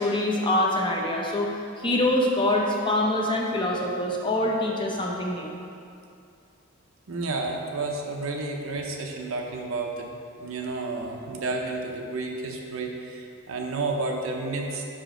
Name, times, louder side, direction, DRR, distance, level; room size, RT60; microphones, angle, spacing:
voice 1, 0.0-1.5 1.8-5.5, left 1 dB, 20° left, -1 dB, 0.6 m, -25 dB
voice 2, 7.1-14.8, right 3 dB, 70° right, 1 dB, 0.7 m, -31 dB
6.0 x 5.0 x 3.7 m, 2.5 s
head